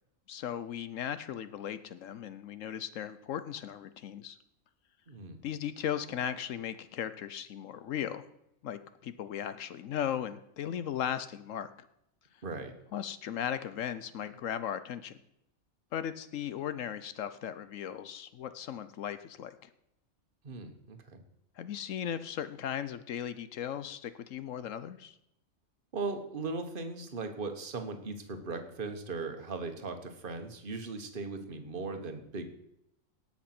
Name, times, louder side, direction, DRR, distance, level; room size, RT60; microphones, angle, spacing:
voice 1, 0.3-4.4 5.4-8.2 8.6-11.7 12.9-15.2 15.9-19.7 21.6-25.2, left 9 dB, 70° left, 13 dB, 1.0 m, -37 dB
voice 2, 5.1-5.4 12.4-12.7 20.4-21.2 25.9-32.5, right 3 dB, 40° right, 6 dB, 1.4 m, -38 dB
18.0 x 6.1 x 6.0 m, 0.81 s
omnidirectional pair, 1.4 m